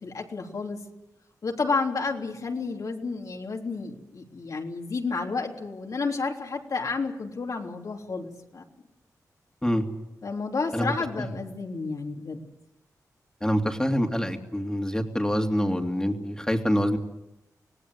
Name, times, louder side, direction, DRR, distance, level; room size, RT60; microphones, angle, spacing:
voice 1, 0.0-0.8 1.4-8.6 10.2-12.4, left 4 dB, 60° left, 1 dB, 3.5 m, -31 dB
voice 2, 10.7-11.3 13.4-17.0, equal, 10° left, 4 dB, 3.1 m, -26 dB
26.0 x 18.0 x 8.2 m, 0.89 s
cardioid pair, 65°, 7 cm